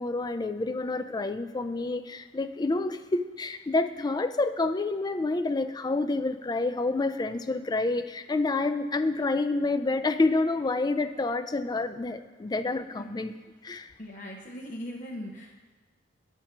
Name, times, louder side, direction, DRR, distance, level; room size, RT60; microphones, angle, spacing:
voice 1, 0.0-13.3 13.6-13.9, left 3 dB, 20° left, 10 dB, 0.3 m, -28 dB
voice 2, 14.0-15.6, equal, 40° left, -3 dB, 0.8 m, -40 dB
9.2 x 4.5 x 5.9 m, 1.3 s
head